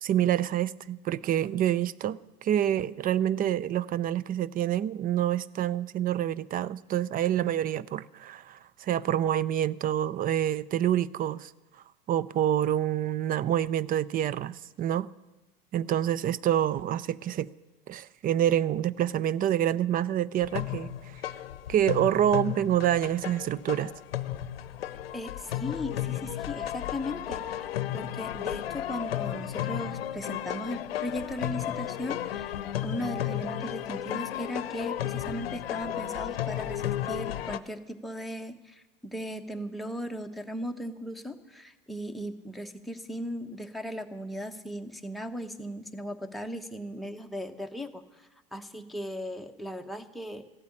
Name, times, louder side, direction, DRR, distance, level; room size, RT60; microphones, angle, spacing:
voice 1, 0.0-11.5 12.1-15.1 15.7-17.5 17.9-21.2 21.7-23.9, right 11 dB, 30° right, 0.5 m, -27 dB
sound 1, 20.4-37.6, left 11 dB, 85° left, 0.7 m, -34 dB
voice 2, 25.1-27.7 27.9-32.5 32.8-50.5, equal, ahead, 1.1 m, -37 dB
14.5 x 8.3 x 9.8 m
hypercardioid pair, 90°, 29 cm